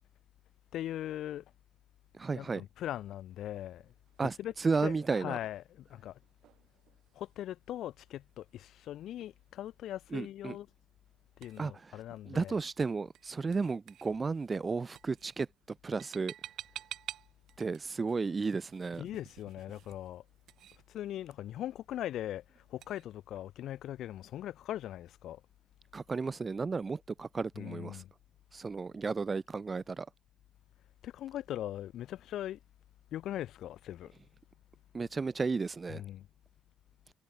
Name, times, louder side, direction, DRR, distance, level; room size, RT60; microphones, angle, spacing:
voice 1, 0.7-1.4 2.3-3.9 4.2-4.5 4.8-6.2 7.1-10.7 11.4-12.5 19.0-20.2 20.9-22.4 22.7-25.4 27.6-28.1 31.0-32.6 33.1-34.1 35.9-36.3, left 12 dB, 80° left, 4.0 m, -40 dB
voice 2, 2.2-2.6 4.2-5.4 10.1-10.6 11.6-11.7 12.3-15.5 15.8-16.3 17.6-19.0 25.9-28.0 28.5-30.1 34.9-36.0, right 4 dB, 30° right, 0.6 m, -33 dB
sound 1, 3.6-23.0, right 12 dB, 75° right, 3.2 m, -53 dB
cardioid pair, 90°, 0 cm